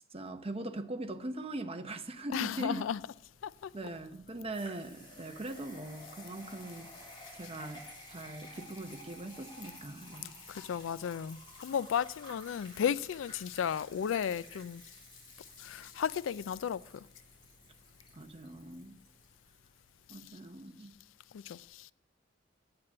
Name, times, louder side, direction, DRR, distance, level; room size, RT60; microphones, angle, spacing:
voice 1, 0.1-2.8 3.7-6.9 7.3-10.3 18.1-19.0 20.1-20.9, right 2 dB, 30° right, 0.9 m, -41 dB
voice 2, 2.3-3.0 3.4-3.7 10.5-14.8 15.6-17.1 21.3-21.9, left 8 dB, 85° left, 0.3 m, -34 dB
sound 1, 2.4-20.3, left 1 dB, 25° left, 3.3 m, -53 dB
8.7 x 8.7 x 8.6 m
head